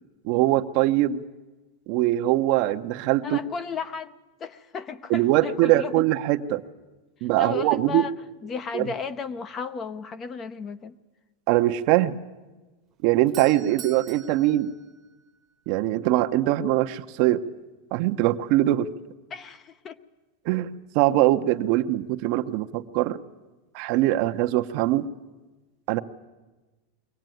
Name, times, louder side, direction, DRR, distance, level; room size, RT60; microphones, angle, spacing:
voice 1, 0.2-1.2 1.9-3.4 5.1-6.6 7.2-8.0 8.7-8.9 11.5-12.2 13.0-14.7 15.7-17.4 17.9-18.9 20.4-20.7 20.9-23.2 23.7-25.1 25.9-26.0, right 15 dB, 50° right, 8 dB, 0.8 m, -22 dB
voice 2, 3.2-6.0 7.4-8.1 8.4-11.0 13.7-13.8 19.3-20.0, left 5 dB, 20° left, 12 dB, 0.7 m, -34 dB
Doorbell, 12.9-15.8, right 8 dB, 20° right, 1.0 m, -45 dB
23.0 x 17.5 x 9.2 m, 1.2 s
supercardioid pair, 155°, 0 cm